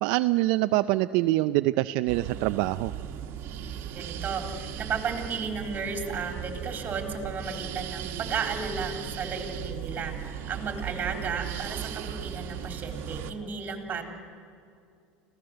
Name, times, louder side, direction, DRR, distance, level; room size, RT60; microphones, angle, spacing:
voice 1, 0.0-2.9, right 17 dB, 70° right, 11 dB, 0.5 m, -25 dB
sound 1, 2.1-13.3, right 9 dB, 50° right, 1.9 m, -37 dB
voice 2, 3.9-14.0, right 5 dB, 35° right, 4 dB, 3.9 m, -34 dB
25.5 x 16.5 x 7.9 m, 2.4 s
supercardioid pair, 105°, 5 cm